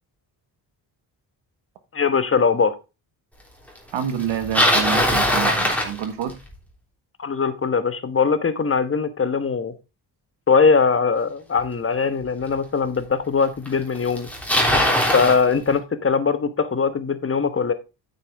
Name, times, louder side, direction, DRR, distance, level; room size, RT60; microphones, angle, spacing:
voice 1, 1.9-2.7 7.2-9.7 10.5-14.3 15.1-17.7, left 5 dB, 30° left, 1.3 m, -21 dB
voice 2, 3.9-6.3, right 8 dB, 80° right, 1.6 m, -27 dB
Bicycle, 4.2-6.5 11.6-11.7 12.5-12.6 13.7-13.8 14.0-15.4, left 1 dB, 5° left, 3.2 m, -20 dB
9.1 x 6.8 x 3.5 m
cardioid pair, 85°, 44 cm